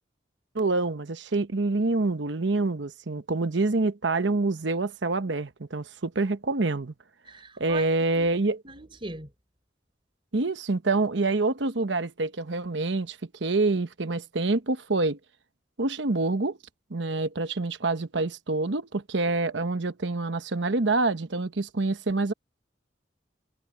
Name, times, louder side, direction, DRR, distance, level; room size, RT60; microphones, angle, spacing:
voice 1, 0.5-6.9 7.6-8.6 10.3-15.2 15.8-16.6 16.9-22.3, right 3 dB, 70° right, 1.0 m, -26 dB
voice 2, 7.3-8.3 8.6-9.3, right 2 dB, 30° right, 3.9 m, -40 dB
head